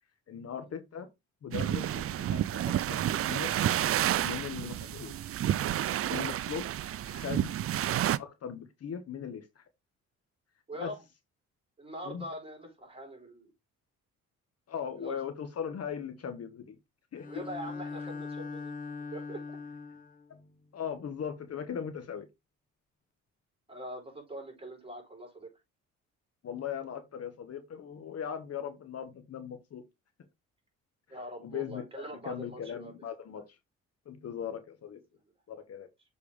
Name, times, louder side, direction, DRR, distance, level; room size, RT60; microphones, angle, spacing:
voice 1, 0.3-1.1 1.4-3.5 4.2-5.3 6.1-6.7 7.0-7.5 8.2-9.6 10.8-10.9 12.0-12.2 14.7-16.8 17.1-17.4 20.3-22.3 26.4-29.8 31.4-33.6 34.0-35.0 35.5-35.9, left 8 dB, 55° left, 1.3 m, -39 dB
sound 1, 1.5-8.2, right 11 dB, 50° right, 0.5 m, -30 dB
voice 2, 10.7-11.0 11.8-13.5 15.0-15.2 17.3-18.7 19.0-19.4 23.7-25.5 31.1-32.9, equal, 20° right, 4.0 m, -43 dB
Bowed string instrument, 17.1-20.3, left 4 dB, 25° left, 0.8 m, -40 dB
6.9 x 4.5 x 3.5 m
cardioid pair, 90°, 30 cm